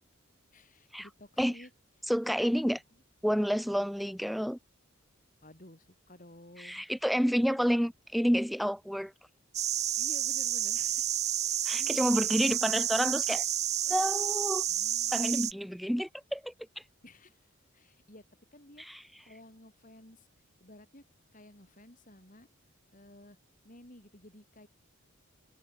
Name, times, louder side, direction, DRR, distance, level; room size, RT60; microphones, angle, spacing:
voice 1, 0.5-1.7 5.4-6.8 10.0-11.1 11.4-12.1 14.7-15.6 17.0-18.2 18.5-20.3 20.6-21.0 21.3-22.5 22.9-23.4 23.6-24.7, left 1 dB, 40° left, 6.1 m, -54 dB
voice 2, 2.1-2.8 3.2-4.6 6.6-9.1 11.6-13.4 13.9-14.6 15.1-16.5 18.8-19.0, equal, ahead, 1.6 m, -29 dB
sound 1, 9.5-15.5, right 11 dB, 30° right, 0.7 m, -30 dB
head